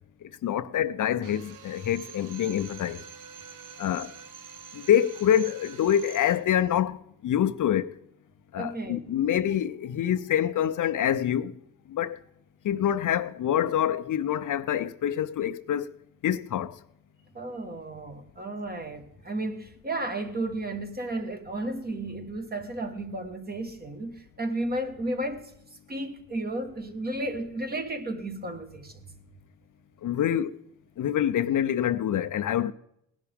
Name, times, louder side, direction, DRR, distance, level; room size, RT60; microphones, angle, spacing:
voice 1, 0.4-3.0 3.8-4.1 4.7-7.0 7.2-7.9 8.5-11.5 11.9-12.2 12.6-15.9 16.2-16.8 30.0-30.6 31.0-32.7, left 10 dB, 60° left, 0.6 m, -26 dB
Drill, 1.2-6.5, right 7 dB, 60° right, 1.0 m, -46 dB
voice 2, 8.6-9.0 17.3-25.5 25.9-29.0, right 1 dB, 25° right, 1.5 m, -33 dB
18.5 x 11.0 x 3.5 m
cardioid pair, 115°, 35 cm